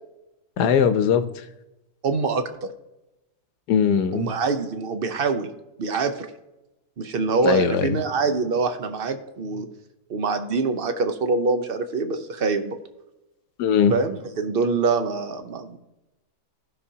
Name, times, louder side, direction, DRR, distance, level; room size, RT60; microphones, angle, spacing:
voice 1, 0.6-1.5 3.7-4.3 7.4-8.0 13.6-13.9, left 7 dB, 80° left, 10 dB, 1.3 m, -20 dB
voice 2, 2.0-2.7 4.1-5.5 5.8-6.3 7.0-9.7 10.1-12.7 13.9-15.8, right 4 dB, 50° right, 8 dB, 0.7 m, -25 dB
16.0 x 5.9 x 2.8 m, 0.98 s
omnidirectional pair, 1.7 m